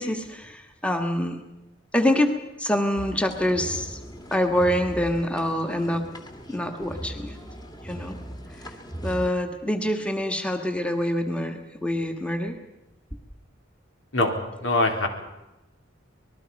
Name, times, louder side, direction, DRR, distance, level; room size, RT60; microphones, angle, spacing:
voice 1, 0.0-1.4 1.9-4.0 4.3-6.0 6.5-7.3 7.8-8.2 8.6-8.7 9.0-12.6, left 1 dB, 5° left, 5 dB, 1.6 m, -26 dB
sound 1, 3.0-9.3, equal, 20° left, 2.1 m, -39 dB
voice 2, 14.1-15.1, left 2 dB, 85° left, 3 dB, 3.6 m, -23 dB
26.0 x 20.0 x 5.4 m, 0.97 s
head